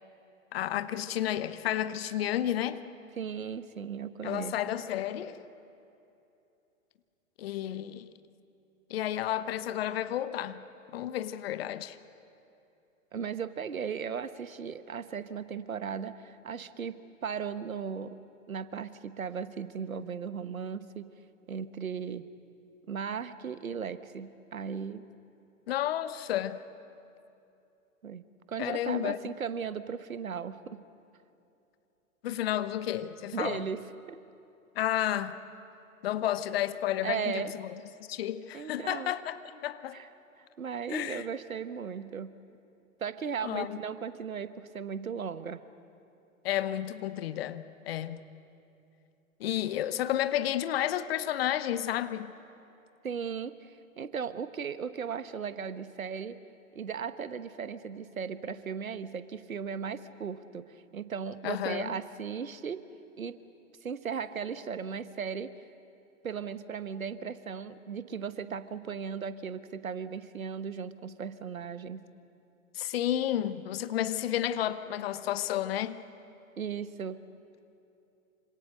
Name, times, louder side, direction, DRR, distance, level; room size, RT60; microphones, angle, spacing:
voice 1, 0.5-2.8 4.2-5.4 7.4-8.1 8.9-10.6 10.9-12.0 25.7-26.6 28.6-29.2 32.2-33.6 34.7-35.4 36.0-37.7 38.1-40.0 40.9-41.2 43.4-43.8 46.4-48.2 49.4-52.3 61.4-62.0 72.7-76.0, left 12 dB, 45° left, 1.1 m, -31 dB
voice 2, 3.2-4.8 13.1-18.2 18.5-21.1 21.5-22.3 22.9-25.1 28.0-28.2 28.5-30.8 33.3-34.2 37.0-37.6 38.5-39.1 39.9-40.1 40.4-42.4 43.0-45.6 53.0-56.4 56.7-62.8 63.2-63.4 63.8-65.5 66.2-72.0 76.6-77.2, right 6 dB, 75° right, 1.2 m, -37 dB
27.0 x 26.0 x 6.7 m
figure-of-eight pair, 110°, 42 cm